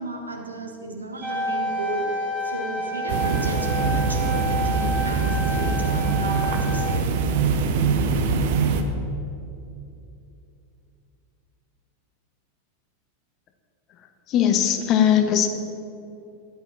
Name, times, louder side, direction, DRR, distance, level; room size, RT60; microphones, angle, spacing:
voice 1, 0.0-7.0, right 2 dB, 80° right, 3 dB, 1.1 m, -34 dB
sound 1, 1.2-7.0, left 1 dB, 5° left, 1.7 m, -29 dB
sound 2, 3.1-8.8, right 4 dB, 50° right, 0.7 m, -23 dB
voice 2, 13.9-15.5, left 9 dB, 35° left, 7 dB, 0.8 m, -20 dB
13.0 x 10.0 x 2.7 m, 2.7 s
figure-of-eight pair, 90°, 0 cm